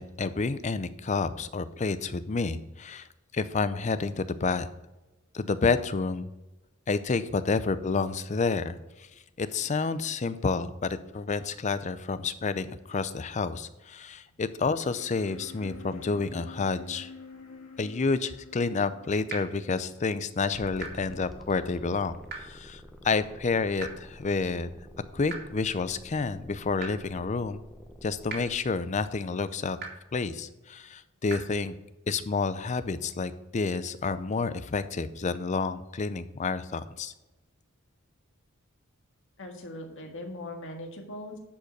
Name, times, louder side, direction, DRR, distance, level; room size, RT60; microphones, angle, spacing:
voice 1, 0.0-3.1 3.3-4.7 5.3-6.3 6.9-9.1 9.4-17.1 17.8-24.7 25.1-27.6 28.0-29.8 30.1-31.7 32.1-37.1, left 4 dB, 35° left, 13 dB, 0.5 m, -29 dB
sound 1, 14.9-20.8, left 4 dB, 80° left, 1.9 m, -49 dB
sound 2, 19.3-19.4 20.8-20.9 22.3-22.4 23.8-23.9 25.3-25.4 26.8-26.9 28.3-28.4 29.8-29.9 31.3-31.4, right 5 dB, 50° right, 2.3 m, -36 dB
sound 3, 20.5-28.6, equal, ahead, 0.9 m, -49 dB
voice 2, 39.4-41.4, left 1 dB, 60° left, 2 dB, 1.8 m, -40 dB
10.5 x 5.3 x 5.2 m, 1.0 s
head